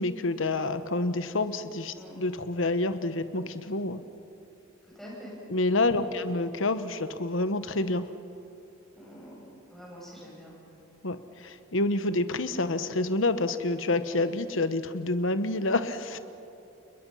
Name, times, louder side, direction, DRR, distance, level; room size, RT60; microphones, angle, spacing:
voice 1, 0.0-4.0 5.5-8.1 11.0-16.2, left 2 dB, 70° left, 11 dB, 1.1 m, -28 dB
voice 2, 4.8-5.4 5.9-6.2 8.9-10.5, equal, ahead, -5 dB, 7.8 m, -46 dB
30.0 x 21.5 x 5.7 m, 2.8 s
head